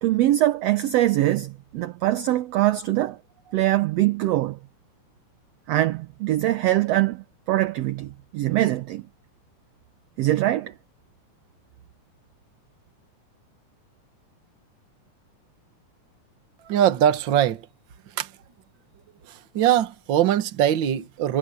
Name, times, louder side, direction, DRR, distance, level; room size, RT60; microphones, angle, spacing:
voice 1, 0.0-3.2 3.5-4.6 5.7-9.1 10.2-10.7, right 15 dB, 75° right, 1.6 m, -23 dB
voice 2, 16.6-17.7 18.1-18.3 19.3-21.4, right 11 dB, 50° right, 1.5 m, -22 dB
omnidirectional pair, 3.6 m